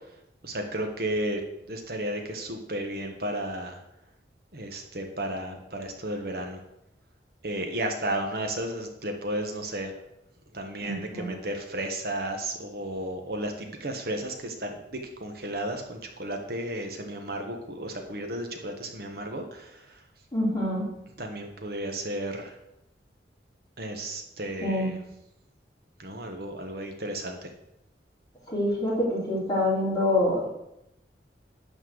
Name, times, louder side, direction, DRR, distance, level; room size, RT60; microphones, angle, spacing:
voice 1, 0.4-1.4 1.7-3.8 4.5-6.6 7.4-10.0 10.5-20.0 21.2-22.5 23.8-25.0 26.0-27.5, right 1 dB, 55° right, 4 dB, 1.3 m, -33 dB
voice 2, 10.8-11.3 20.3-20.8 24.6-24.9 28.5-30.5, left 1 dB, 20° left, -6 dB, 3.9 m, -26 dB
11.5 x 4.4 x 7.7 m, 0.82 s
head